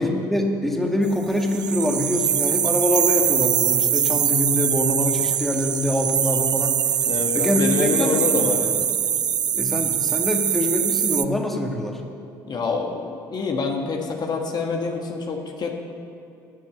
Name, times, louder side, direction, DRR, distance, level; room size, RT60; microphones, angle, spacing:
voice 1, 0.0-6.8 7.3-8.5 9.5-12.0, left 1 dB, ahead, 1 dB, 1.9 m, -24 dB
sound 1, 1.4-11.2, right 9 dB, 45° right, 0.5 m, -23 dB
voice 2, 7.1-8.8 12.5-15.7, left 4 dB, 45° left, 2 dB, 1.6 m, -26 dB
13.0 x 7.3 x 7.7 m, 2.6 s
hypercardioid pair, 65°, 10 cm